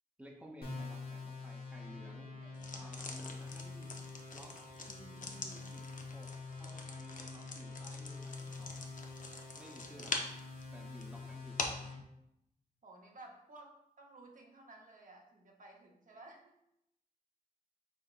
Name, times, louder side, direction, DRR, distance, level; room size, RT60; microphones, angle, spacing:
voice 1, 0.2-2.3 2.7-4.0 4.3-8.9 9.6-10.3 10.7-11.8, equal, 10° right, 0 dB, 0.7 m, -55 dB
sound 1, 0.6-12.0, left 3 dB, 90° left, 1.1 m, -46 dB
voice 2, 2.4-3.0 12.8-16.6, right 2 dB, 60° right, 0 dB, 0.7 m, -56 dB
sound 2, 2.5-11.9, left 3 dB, 60° left, 0.6 m, -45 dB
5.1 x 3.7 x 2.4 m, 0.81 s
wide cardioid pair, 75°, 15 cm